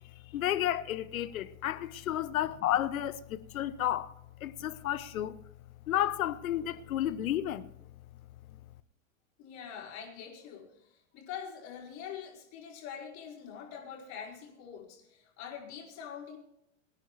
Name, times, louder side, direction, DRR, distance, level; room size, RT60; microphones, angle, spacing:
voice 1, 0.3-4.1 4.4-5.4 5.9-7.7, left 12 dB, 85° left, 1.1 m, -32 dB
voice 2, 9.4-16.4, left 7 dB, 40° left, 4.8 m, -44 dB
24.5 x 9.7 x 3.3 m
supercardioid pair, 135°, 40 cm